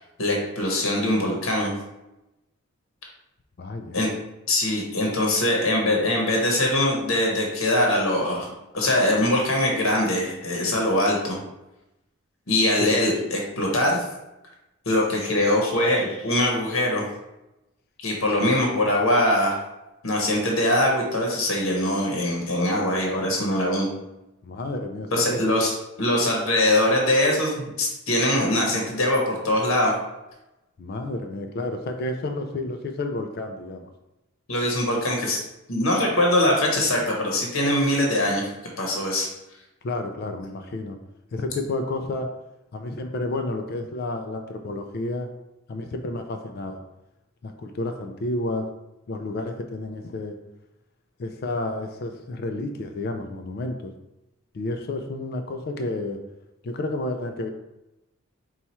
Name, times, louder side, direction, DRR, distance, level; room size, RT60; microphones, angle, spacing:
voice 1, 0.2-1.7 3.9-4.1 4.5-11.4 12.5-14.0 14.9-17.0 18.0-19.6 20.0-23.9 25.1-25.7 26.0-29.9 34.5-35.4 35.7-38.5 38.8-39.3, left 1 dB, 75° left, 0 dB, 0.9 m, -22 dB
voice 2, 3.6-4.0 12.8-13.0 24.4-25.4 30.8-33.9 39.8-41.0 41.3-42.3 42.7-45.3 45.7-46.8 47.4-48.7 49.1-50.3 51.2-53.9 54.5-56.2 56.6-57.5, left 2 dB, 45° left, 5 dB, 0.3 m, -30 dB
4.3 x 2.3 x 4.2 m, 0.95 s
head